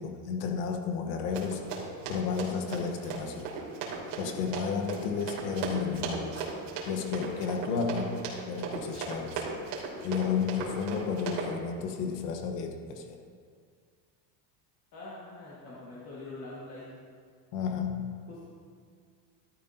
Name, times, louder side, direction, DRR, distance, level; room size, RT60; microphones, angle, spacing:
voice 1, 0.0-1.6 2.1-3.5 4.2-6.5 6.9-8.2 8.5-9.4 10.0-13.2 17.5-18.2, left 6 dB, 70° left, 3 dB, 1.3 m, -32 dB
Run, 1.3-11.5, right 5 dB, 60° right, 3.1 m, -37 dB
voice 2, 14.9-16.9 18.3-18.4, left 2 dB, 30° left, -8 dB, 1.8 m, -44 dB
13.0 x 12.5 x 2.8 m, 2.1 s
cardioid pair, 180°, 49 cm